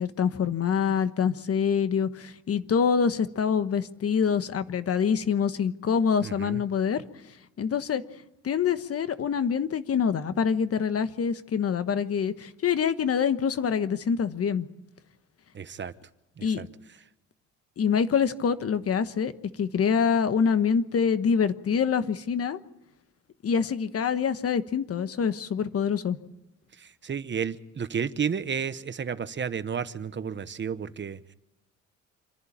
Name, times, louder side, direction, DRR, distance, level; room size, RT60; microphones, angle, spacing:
voice 1, 0.0-7.0 7.6-8.0 8.4-14.7 16.4-16.7 17.8-19.3 19.6-22.6 23.4-26.2, left 7 dB, 50° left, 12 dB, 1.3 m, -25 dB
voice 2, 6.2-6.6 15.5-15.9 16.4-16.7 26.8-31.2, right 7 dB, 40° right, 13 dB, 1.0 m, -32 dB
27.5 x 11.0 x 8.7 m, 0.90 s
cardioid pair, 90°, 30 cm